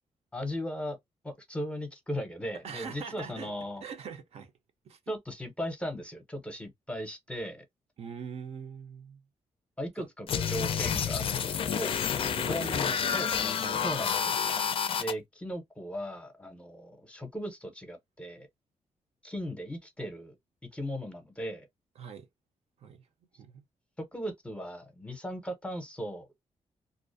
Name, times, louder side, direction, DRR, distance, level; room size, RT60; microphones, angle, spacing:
voice 1, 0.3-1.0 1.2-3.8 5.1-7.6 9.8-12.0 12.5-13.3 13.8-14.3 15.0-18.5 19.2-20.4 20.7-21.7 24.1-26.4, equal, 10° left, 0.7 m, -37 dB
voice 2, 2.6-3.5 3.8-4.5 4.8-5.0 8.0-9.2 10.0-10.1 12.3-13.3 13.6-14.0 22.0-22.3 22.8-23.1 23.4-23.6, right 7 dB, 65° right, 0.6 m, -43 dB
sound 1, 10.3-15.1, left 7 dB, 50° left, 0.4 m, -29 dB
2.4 x 2.0 x 2.5 m
cardioid pair, 120°, 12 cm